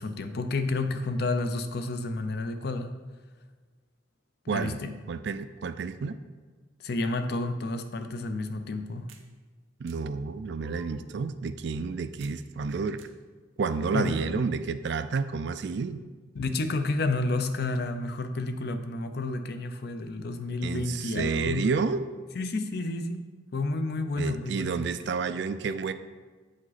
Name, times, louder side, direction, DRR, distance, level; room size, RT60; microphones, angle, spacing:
voice 1, 0.0-3.0 4.5-4.9 6.8-9.1 13.9-14.4 16.3-21.6 22.3-23.2 23.5-24.8, left 2 dB, 55° left, 8 dB, 0.5 m, -30 dB
voice 2, 4.5-4.8 5.1-6.2 9.8-13.1 13.6-16.0 20.6-22.1 24.2-25.9, right 5 dB, 60° right, 11 dB, 0.3 m, -30 dB
sound 1, 9.1-9.3 9.9-10.0 10.6-11.1 12.2-12.4 13.0-13.1 13.7-14.2, right 3 dB, 90° right, 0.7 m, -50 dB
8.5 x 5.1 x 4.0 m, 1.4 s
head